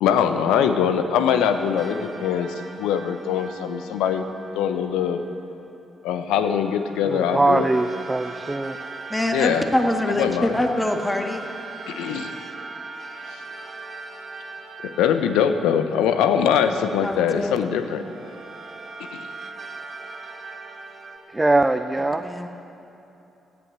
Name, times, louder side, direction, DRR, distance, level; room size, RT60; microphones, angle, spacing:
voice 1, 0.0-4.2 4.5-5.2 6.0-7.6 9.3-9.7 10.2-10.6 11.9-12.3 13.3-13.4 14.8-18.0 19.1-19.3, left 8 dB, 70° left, 9 dB, 0.8 m, -22 dB
sound 1, 1.3-5.5 6.4-16.8 17.3-21.2, right 3 dB, 45° right, 2.0 m, -40 dB
voice 2, 7.0-8.8 21.3-22.3, right 2 dB, 20° right, 8 dB, 0.7 m, -21 dB
voice 3, 9.1-11.5 17.0-17.6 22.2-22.5, left 1 dB, 15° left, 4 dB, 1.9 m, -24 dB
16.5 x 9.6 x 8.2 m, 2.9 s
hypercardioid pair, 40°, 0 cm